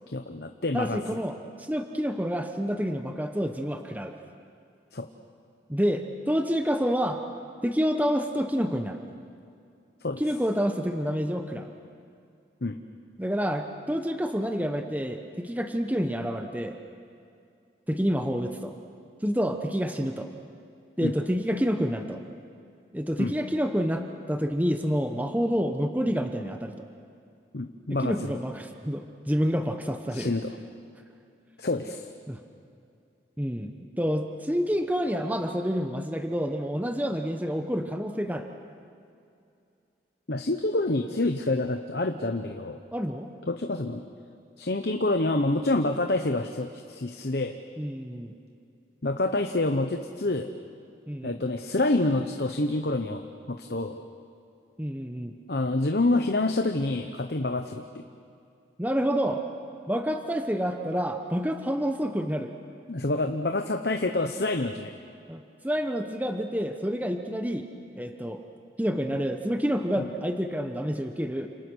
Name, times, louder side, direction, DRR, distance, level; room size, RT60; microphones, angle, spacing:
voice 1, 0.1-1.0 4.9-5.1 10.0-10.2 12.6-12.8 21.0-21.1 23.2-23.3 27.5-28.3 30.1-30.5 31.6-32.1 40.3-42.8 43.5-44.0 44.6-47.6 49.0-50.5 51.2-54.0 55.5-58.0 62.9-64.9 70.0-70.1, left 2 dB, 65° left, 6 dB, 1.0 m, -27 dB
voice 2, 0.7-4.1 5.7-7.2 7.6-9.0 10.2-11.7 13.2-16.8 17.9-18.7 19.2-20.3 21.0-22.2 22.9-26.7 27.9-30.3 32.3-32.4 33.4-38.5 42.9-43.3 47.8-48.3 51.1-51.4 54.8-55.3 58.8-59.4 59.9-62.5 65.3-67.7 67.9-68.4 68.8-71.5, equal, 10° right, 5 dB, 1.0 m, -28 dB
29.5 x 27.5 x 6.4 m, 2.5 s
head